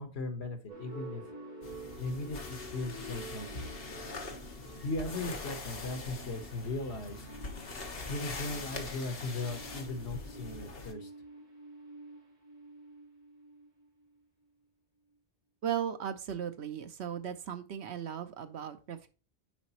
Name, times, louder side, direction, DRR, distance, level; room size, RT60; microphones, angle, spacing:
voice 1, 0.0-1.3 2.0-3.6 4.8-7.3 8.1-11.1, left 2 dB, 80° left, 6 dB, 1.6 m, -38 dB
sound 1, 0.7-14.0, right 1 dB, 45° right, 3.6 m, -49 dB
sound 2, 1.6-10.9, left 3 dB, 60° left, 1.3 m, -43 dB
voice 2, 15.6-19.1, right 9 dB, 85° right, 9 dB, 1.1 m, -37 dB
9.7 x 4.1 x 3.0 m, 0.34 s
omnidirectional pair, 1.1 m